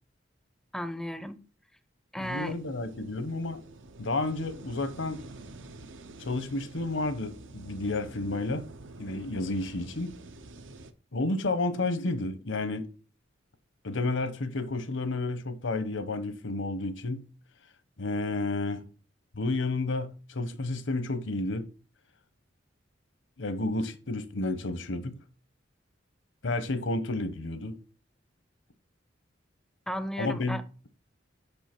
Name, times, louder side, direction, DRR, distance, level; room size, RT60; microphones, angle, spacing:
voice 1, 0.7-1.4 2.1-2.6 29.9-30.6, equal, ahead, 0.5 m, -34 dB
voice 2, 2.2-3.6 4.0-5.3 6.2-8.7 9.0-10.1 11.1-12.9 13.8-17.3 18.0-18.8 19.3-21.7 23.4-25.2 26.4-27.8 30.2-30.6, left 2 dB, 75° left, 0.9 m, -31 dB
sound 1, 2.2-10.9, right 2 dB, 80° right, 0.7 m, -48 dB
6.3 x 5.5 x 4.4 m
head